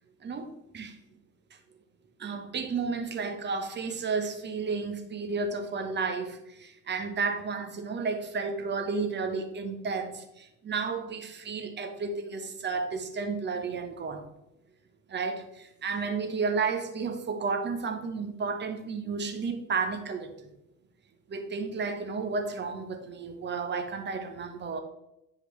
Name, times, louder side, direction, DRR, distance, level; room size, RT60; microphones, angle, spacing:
voice 1, 2.2-14.2 15.1-20.3 21.3-24.8, right 4 dB, 20° right, 5 dB, 1.0 m, -32 dB
9.5 x 4.9 x 3.2 m, 0.86 s
figure-of-eight pair, 65°, 48 cm